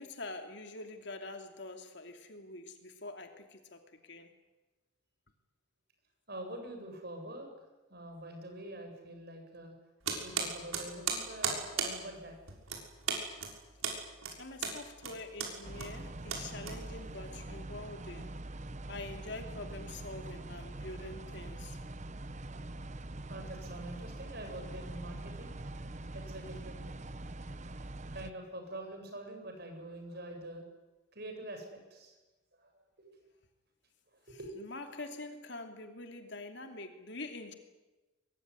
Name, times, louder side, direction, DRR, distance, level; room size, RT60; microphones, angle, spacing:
voice 1, 0.0-4.3 14.3-18.4 18.9-21.8 34.3-37.5, left 2 dB, 55° left, 6 dB, 2.8 m, -45 dB
voice 2, 6.3-7.5 7.9-9.7 10.2-12.4 20.8-21.1 23.3-26.9 28.1-30.6 31.1-32.1 32.5-32.7 33.0-33.1 34.1-34.5, right 1 dB, 50° right, 4 dB, 7.5 m, -45 dB
sound 1, 10.0-17.2, right 6 dB, 85° right, 6.4 m, -37 dB
sound 2, 15.6-28.3, right 2 dB, 35° right, 0.9 m, -44 dB
24.0 x 22.5 x 9.8 m, 1.1 s
head